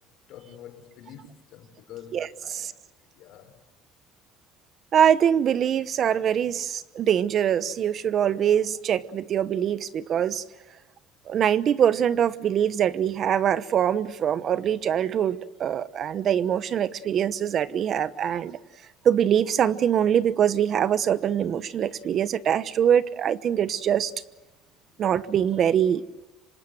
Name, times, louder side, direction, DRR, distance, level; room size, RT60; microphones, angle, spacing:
voice 1, 0.3-2.7 3.1-3.6, left 9 dB, 60° left, 4.9 m, -46 dB
voice 2, 2.1-2.7 4.9-10.4 11.3-18.6 19.0-24.1 25.0-26.2, right 9 dB, 40° right, 1.0 m, -23 dB
26.0 x 26.0 x 7.9 m
cardioid pair, 140°, 0 cm